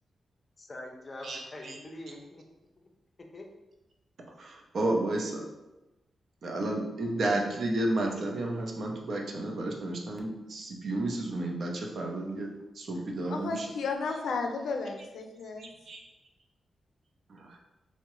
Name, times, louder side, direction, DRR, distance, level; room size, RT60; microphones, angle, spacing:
voice 1, 0.6-2.5 3.2-3.5, left 1 dB, 30° left, 2 dB, 0.5 m, -44 dB
voice 2, 1.2-1.8 4.4-5.4 6.4-12.5 12.7-13.7 15.6-16.1 17.3-17.6, right 2 dB, 65° right, 1 dB, 0.5 m, -32 dB
voice 3, 13.3-15.7, left 4 dB, 85° left, 4 dB, 0.4 m, -33 dB
3.6 x 2.1 x 3.0 m, 1.0 s
wide cardioid pair, 105°, 0 cm